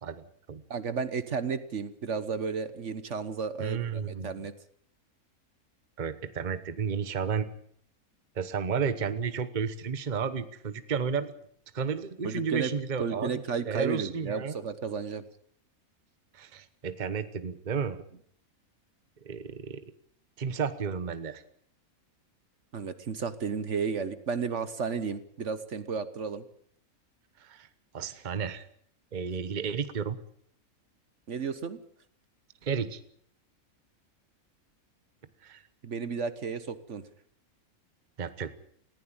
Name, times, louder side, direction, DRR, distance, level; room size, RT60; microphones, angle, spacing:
voice 1, 0.0-0.6 3.6-4.3 6.0-7.5 8.3-11.3 11.7-13.3 13.6-14.5 16.3-18.0 19.2-19.9 20.4-21.4 27.4-27.7 27.9-28.6 29.1-30.2 32.6-33.0 35.4-35.6 38.2-38.5, right 6 dB, 35° right, 12 dB, 1.1 m, -32 dB
voice 2, 0.7-4.5 12.2-12.7 13.0-15.2 22.7-26.4 31.3-31.8 35.8-37.0, right 5 dB, 55° right, 13 dB, 1.4 m, -33 dB
20.0 x 15.5 x 8.8 m, 0.65 s
omnidirectional pair, 1.5 m